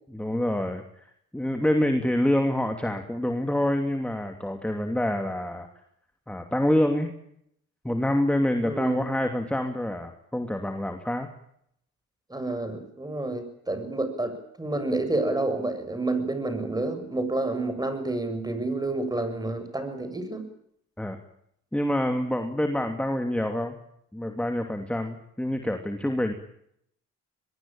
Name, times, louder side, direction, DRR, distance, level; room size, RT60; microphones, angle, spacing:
voice 1, 0.1-1.0 1.3-5.7 6.3-7.1 7.8-11.3 21.0-21.2 21.7-23.8 24.1-26.3, left 1 dB, 5° left, 5 dB, 2.9 m, -26 dB
voice 2, 8.6-9.0 12.3-20.4, right 2 dB, 15° right, 9 dB, 7.2 m, -29 dB
24.0 x 21.5 x 9.0 m, 0.72 s
cardioid pair, 90°, 30 cm